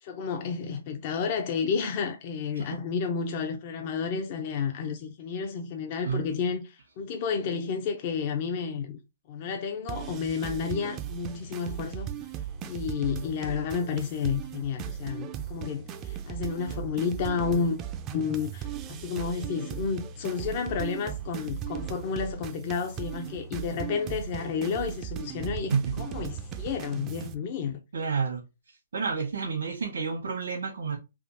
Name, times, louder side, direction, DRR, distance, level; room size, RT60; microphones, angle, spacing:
voice 1, 0.0-9.0 9.3-12.1 12.7-17.8 18.1-27.8, left 6 dB, 40° left, 0.5 m, -31 dB
sound 1, 9.9-27.3, right 9 dB, 25° right, 0.4 m, -37 dB
voice 2, 25.7-26.1 27.9-28.4 28.9-31.0, right 5 dB, 80° right, 1.2 m, -29 dB
3.5 x 2.5 x 2.6 m
hypercardioid pair, 145°, 0 cm